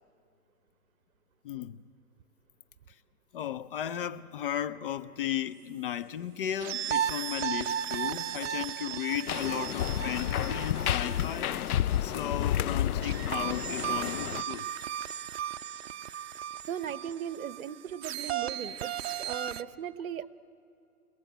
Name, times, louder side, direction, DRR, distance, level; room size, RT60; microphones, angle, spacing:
voice 1, 1.4-1.8 3.3-14.7, left 10 dB, 35° left, 0.7 m, -35 dB
sound 1, 6.6-12.2 13.0-19.6, right 10 dB, 45° right, 0.7 m, -35 dB
sound 2, 9.3-14.4, left 11 dB, 75° left, 0.7 m, -30 dB
voice 2, 16.7-20.3, right 9 dB, 65° right, 1.0 m, -38 dB
29.0 x 20.5 x 9.2 m
hypercardioid pair, 140°, 45 cm